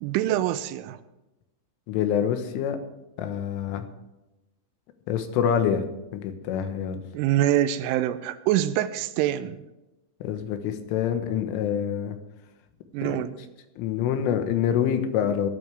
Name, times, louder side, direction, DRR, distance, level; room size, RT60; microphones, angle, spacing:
voice 1, 0.0-1.0 7.1-9.6 12.9-13.4, right 12 dB, 90° right, 12 dB, 3.2 m, -25 dB
voice 2, 1.9-2.8 3.2-3.9 5.1-5.8 6.1-7.0 10.2-12.2 13.0-13.2 13.8-15.5, left 9 dB, 85° left, 7 dB, 3.8 m, -26 dB
19.0 x 12.5 x 3.5 m, 1.0 s
omnidirectional pair, 5.6 m